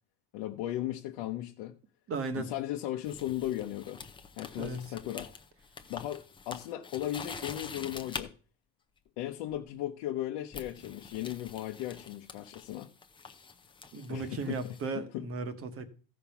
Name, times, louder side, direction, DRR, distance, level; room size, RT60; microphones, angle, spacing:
voice 1, 0.3-1.8 2.4-4.0 4.4-5.3 5.9-8.3 9.2-12.9 13.9-14.6 14.9-15.2, left 13 dB, 75° left, 1.0 m, -36 dB
voice 2, 2.1-2.5 4.6-4.8 13.9-15.9, right 4 dB, 30° right, 1.1 m, -36 dB
sound 1, 3.0-8.3 9.5-9.8 10.5-14.8, left 5 dB, 10° left, 0.6 m, -46 dB
15.0 x 5.3 x 5.8 m
cardioid pair, 175°, 44 cm